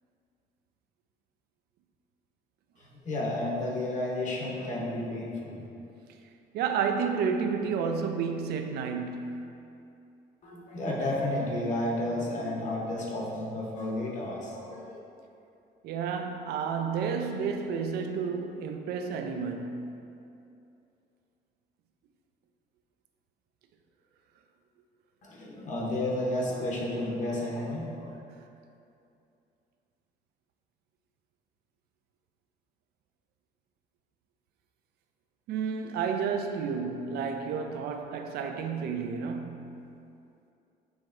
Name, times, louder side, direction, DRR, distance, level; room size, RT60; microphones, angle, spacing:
voice 1, 2.8-5.7 10.4-15.0 25.2-28.1, left 1 dB, 45° left, 0.8 m, -32 dB
voice 2, 6.5-9.5 15.8-20.1 35.5-39.9, right 6 dB, 70° right, 0.4 m, -31 dB
6.4 x 3.0 x 2.5 m
cardioid pair, 110°, 17 cm